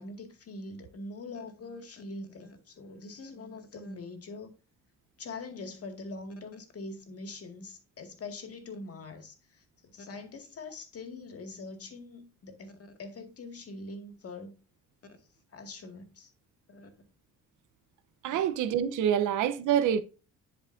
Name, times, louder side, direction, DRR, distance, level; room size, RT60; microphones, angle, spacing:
voice 1, 0.0-4.5 5.2-14.5 15.5-16.3 16.7-16.9, left 3 dB, 50° left, 2.0 m, -43 dB
voice 2, 18.2-20.0, right 9 dB, 90° right, 0.9 m, -26 dB
11.0 x 4.7 x 2.6 m
cardioid pair, 90°, 30 cm